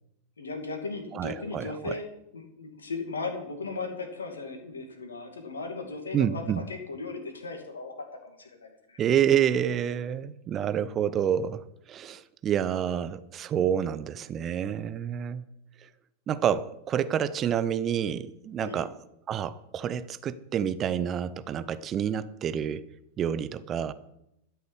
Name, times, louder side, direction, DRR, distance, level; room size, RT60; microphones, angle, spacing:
voice 1, 0.4-2.1 2.3-9.0 18.6-18.8, left 3 dB, 70° left, 5 dB, 2.5 m, -37 dB
voice 2, 1.1-2.0 6.1-6.6 9.0-15.4 15.8-15.9 16.3-18.9 19.3-22.8 23.2-23.9, right 9 dB, 30° right, 15 dB, 0.7 m, -28 dB
13.0 x 6.8 x 8.3 m, 0.82 s
figure-of-eight pair, 90°, 0 cm